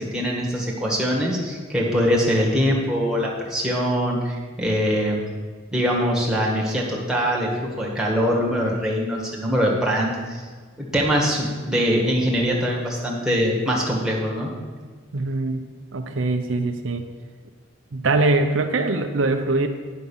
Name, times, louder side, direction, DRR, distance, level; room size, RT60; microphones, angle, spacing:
voice 1, 0.0-5.2 5.7-10.4 10.8-14.5, equal, 5° right, -4 dB, 1.6 m, -23 dB
voice 2, 15.1-15.6 15.9-17.1 17.9-19.7, right 2 dB, 65° right, 6 dB, 0.6 m, -22 dB
9.5 x 5.5 x 7.1 m, 1.5 s
head